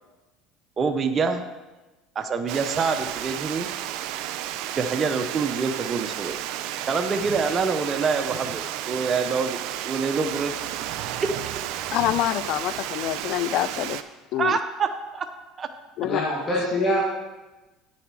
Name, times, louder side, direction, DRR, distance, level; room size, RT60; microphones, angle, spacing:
voice 1, 0.8-1.4 2.1-3.7 4.8-6.4 6.8-10.5 14.4-15.3 15.6-15.7, right 5 dB, 30° right, 7 dB, 0.7 m, -26 dB
Water, 2.5-14.0, right 12 dB, 70° right, 0.5 m, -32 dB
voice 2, 11.9-14.0 14.3-14.6 16.0-16.2, left 14 dB, 65° left, 18 dB, 0.3 m, -26 dB
voice 3, 16.0-17.0, left 1 dB, 25° left, -3 dB, 2.0 m, -24 dB
9.3 x 7.2 x 4.7 m, 1.1 s
supercardioid pair, 105°, 0 cm